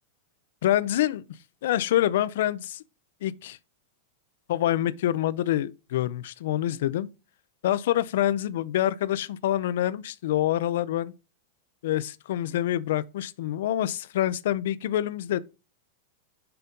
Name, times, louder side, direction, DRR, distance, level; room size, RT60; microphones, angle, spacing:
voice 1, 0.6-1.2 1.6-2.8 3.2-3.6 4.5-7.1 7.6-11.1 11.8-15.4, left 12 dB, 70° left, 0.6 m, -26 dB
6.8 x 5.3 x 3.8 m
supercardioid pair, 150°, 0 cm